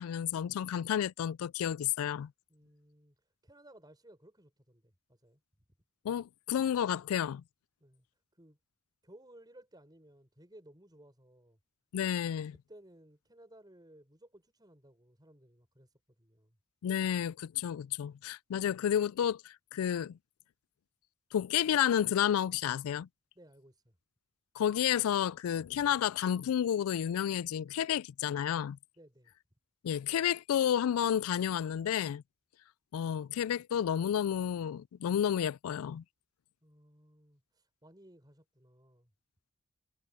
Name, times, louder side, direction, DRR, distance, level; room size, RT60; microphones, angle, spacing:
voice 1, 0.0-2.3 6.0-7.4 11.9-12.6 16.8-20.2 21.3-23.1 24.6-28.8 29.8-32.2 32.9-36.0, left 9 dB, 70° left, 0.3 m, -31 dB
voice 2, 2.5-5.4 7.8-8.0 8.3-8.6 9.0-11.6 12.5-16.6 23.3-24.0 29.0-29.3 36.6-39.1, right 1 dB, 20° right, 5.0 m, -59 dB
head